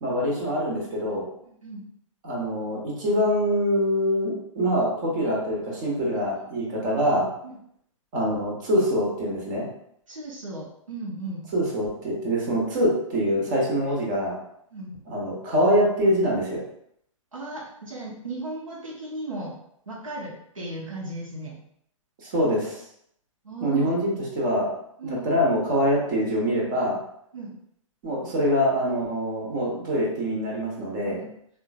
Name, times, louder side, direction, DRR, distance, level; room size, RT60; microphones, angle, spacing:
voice 1, 0.0-1.2 2.2-7.3 8.1-9.7 11.5-14.4 15.1-16.6 22.2-22.8 23.6-24.7 25.0-27.0 28.0-31.2, equal, 35° right, -3 dB, 1.2 m, -24 dB
voice 2, 1.4-1.8 6.1-6.5 7.4-7.6 10.1-11.5 14.7-15.0 17.3-19.6 19.9-21.6 23.4-23.9 25.0-25.3 27.3-27.5 31.0-31.3, right 2 dB, 75° right, -5 dB, 0.8 m, -36 dB
3.7 x 2.4 x 2.3 m, 0.71 s
figure-of-eight pair, 115°, 17 cm